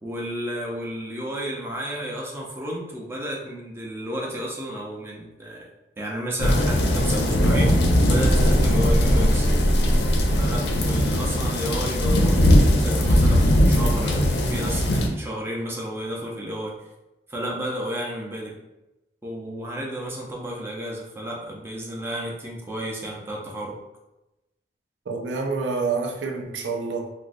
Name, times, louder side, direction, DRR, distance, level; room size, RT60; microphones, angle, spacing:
voice 1, 0.0-5.7 6.0-7.8 8.1-9.5 10.4-16.7 17.3-18.6 19.2-23.8, equal, 15° right, -3 dB, 0.5 m, -32 dB
sound 1, 6.4-15.1, left 1 dB, 65° left, 0.5 m, -20 dB
sound 2, 8.2-11.8, equal, 20° left, 0.8 m, -23 dB
voice 2, 25.1-27.1, right 4 dB, 85° right, 2 dB, 0.4 m, -27 dB
3.7 x 2.0 x 2.5 m, 0.97 s
head